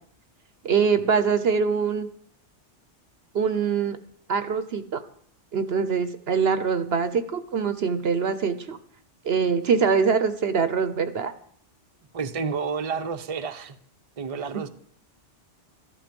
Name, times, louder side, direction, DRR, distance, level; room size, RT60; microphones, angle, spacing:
voice 1, 0.6-2.1 3.3-4.0 4.3-5.0 5.5-8.8 9.2-11.3, right 6 dB, 60° right, 1.0 m, -23 dB
voice 2, 12.1-13.8 14.2-14.7, right 5 dB, 35° right, 0.8 m, -30 dB
13.5 x 12.0 x 5.3 m
omnidirectional pair, 1.2 m